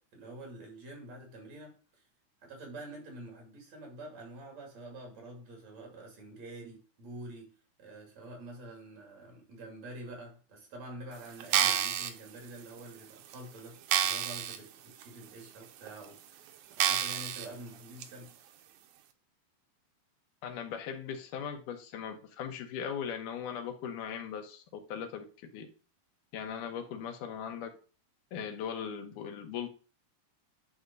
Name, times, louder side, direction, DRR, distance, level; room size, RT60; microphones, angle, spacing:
voice 1, 0.1-2.0 2.4-7.5 7.8-18.3, right 1 dB, 60° right, 0 dB, 3.8 m, -47 dB
sound 1, 11.4-12.1 12.8-12.9 13.3-13.4 13.9-14.6 15.0-15.1 15.9-16.0 16.8-17.5 18.0-18.1, right 10 dB, 80° right, 2.1 m, -28 dB
voice 2, 20.4-24.6 24.9-25.2 25.5-25.7 26.3-27.7 28.3-29.7, left 7 dB, 85° left, 5 dB, 2.6 m, -38 dB
9.7 x 3.6 x 5.3 m, 0.38 s
omnidirectional pair, 3.6 m